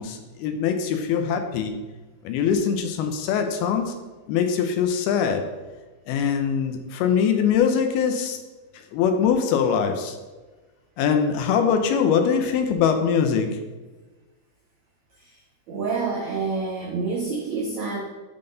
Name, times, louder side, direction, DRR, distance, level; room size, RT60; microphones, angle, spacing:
voice 1, 0.0-1.7 2.2-3.9 4.3-5.4 6.1-8.4 8.9-10.2 11.0-13.5, left 7 dB, 80° left, 6 dB, 2.6 m, -22 dB
voice 2, 15.7-18.0, right 4 dB, 85° right, -1 dB, 1.5 m, -27 dB
11.0 x 4.0 x 3.9 m, 1.2 s
omnidirectional pair, 4.5 m